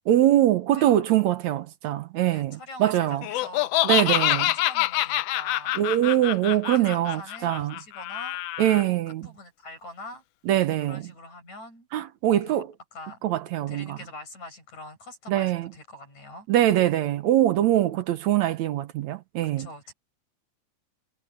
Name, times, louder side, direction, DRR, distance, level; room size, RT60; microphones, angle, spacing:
voice 1, 0.1-3.2 3.8-4.5 5.8-7.8 8.6-9.3 10.5-11.0 11.9-12.7 13.2-14.0 15.3-15.7 16.5-19.7, right 12 dB, 70° right, 2.1 m, -23 dB
voice 2, 0.7-1.0 2.3-5.8 6.9-8.4 8.8-10.2 10.9-11.9 12.4-12.5 12.9-13.2 13.7-16.5 19.6-19.9, left 2 dB, 65° left, 9.3 m, -44 dB
Laughter, 3.2-8.8, left 15 dB, 85° left, 1.4 m, -26 dB
omnidirectional pair, 3.5 m